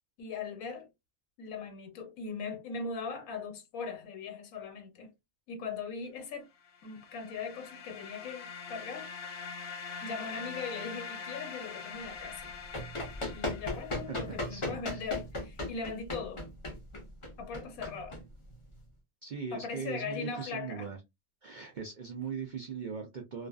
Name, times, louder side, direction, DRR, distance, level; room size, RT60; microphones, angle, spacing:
voice 1, 0.2-0.9 1.4-5.1 5.5-6.5 6.8-9.1 10.0-12.5 13.3-16.4 17.4-18.2 19.5-20.9, left 5 dB, 85° left, 1.2 m, -39 dB
sound 1, 6.6-14.4, left 5 dB, 65° left, 0.9 m, -44 dB
Run, 12.4-18.8, left 1 dB, 35° left, 0.5 m, -37 dB
voice 2, 14.1-15.1 19.2-21.0 21.4-23.5, right 6 dB, 75° right, 0.4 m, -40 dB
2.4 x 2.3 x 2.3 m
omnidirectional pair, 1.4 m